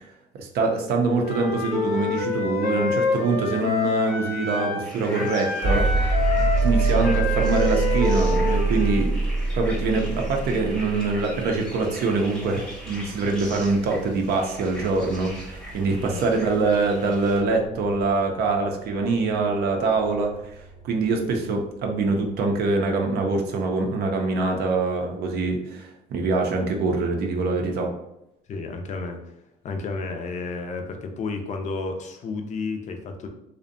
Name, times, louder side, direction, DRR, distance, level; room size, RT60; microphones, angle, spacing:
voice 1, 0.3-9.1 9.5-20.3 20.8-27.9, right 3 dB, 70° right, 2 dB, 0.5 m, -24 dB
Wind instrument woodwind instrument, 1.2-4.8 5.1-9.0, left 4 dB, 75° left, 0.8 m, -27 dB
sound 1, 4.8-17.4, equal, 5° left, 0.7 m, -41 dB
sound 2, 5.6-21.6, right 4 dB, 30° right, 0.7 m, -27 dB
voice 2, 28.5-29.2 29.6-33.3, left 3 dB, 45° left, 4 dB, 0.4 m, -31 dB
2.6 x 2.1 x 2.5 m, 0.83 s
cardioid pair, 110°, 17 cm